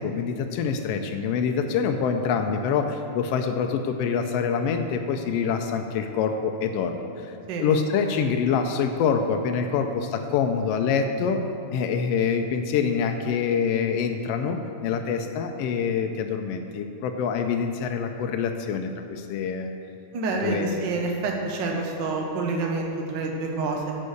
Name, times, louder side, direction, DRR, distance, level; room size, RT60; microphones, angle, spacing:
voice 1, 0.0-11.4 11.7-19.7 20.3-20.9, left 6 dB, 80° left, 5 dB, 1.4 m, -26 dB
voice 2, 20.1-23.9, right 3 dB, 60° right, 1 dB, 1.2 m, -28 dB
9.8 x 5.5 x 6.4 m, 2.9 s
omnidirectional pair, 3.4 m